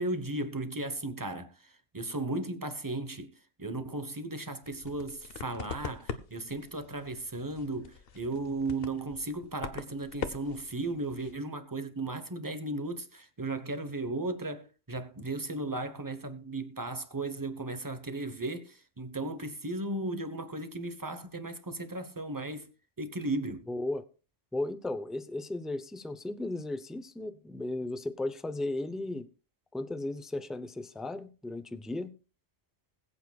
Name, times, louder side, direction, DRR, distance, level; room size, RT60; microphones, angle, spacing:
voice 1, 0.0-3.3 3.6-22.7 23.0-23.7, right 2 dB, 20° right, 1.0 m, -36 dB
sound 1, 4.6-11.3, left 6 dB, 60° left, 1.1 m, -43 dB
voice 2, 23.7-24.0 24.5-29.3 29.7-32.1, left 2 dB, ahead, 0.4 m, -35 dB
20.5 x 8.3 x 2.4 m
omnidirectional pair, 1.2 m